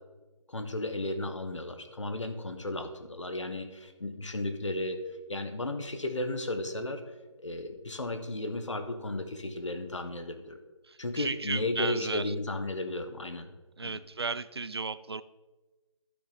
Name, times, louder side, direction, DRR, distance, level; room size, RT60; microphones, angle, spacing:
voice 1, 0.5-5.0 5.3-7.0 7.4-10.6 11.0-13.5 13.8-14.0, left 2 dB, 65° left, 7 dB, 1.4 m, -34 dB
voice 2, 10.8-12.3 13.8-15.2, right 4 dB, 50° right, 15 dB, 0.4 m, -35 dB
12.0 x 6.3 x 4.3 m, 1.2 s
figure-of-eight pair, 175°, 17 cm